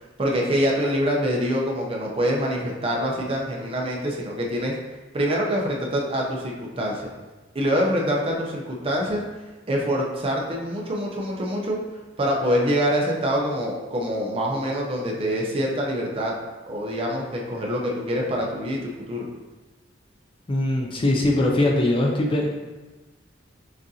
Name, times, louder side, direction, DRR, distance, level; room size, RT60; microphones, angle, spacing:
voice 1, 0.2-4.7 5.1-7.1 7.5-9.2 9.7-11.8 12.2-16.3 16.7-19.3, equal, 30° right, -2 dB, 0.6 m, -25 dB
voice 2, 20.5-22.6, left 1 dB, 25° left, 0 dB, 0.5 m, -21 dB
6.2 x 2.6 x 2.7 m, 1.2 s
head